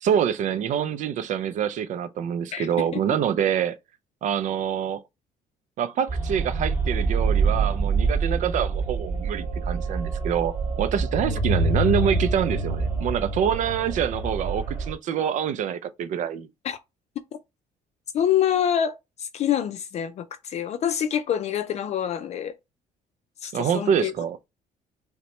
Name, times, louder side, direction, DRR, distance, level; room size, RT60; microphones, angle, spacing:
voice 1, 0.0-3.8 4.2-5.0 5.8-16.5 23.5-24.4, right 8 dB, 55° right, 0.4 m, -26 dB
sound 1, 6.1-14.9, right 3 dB, 15° right, 2.4 m, -26 dB
voice 2, 18.1-22.6 23.4-24.1, left 9 dB, 50° left, 0.4 m, -26 dB
5.6 x 2.1 x 3.1 m
cardioid pair, 140°, 15 cm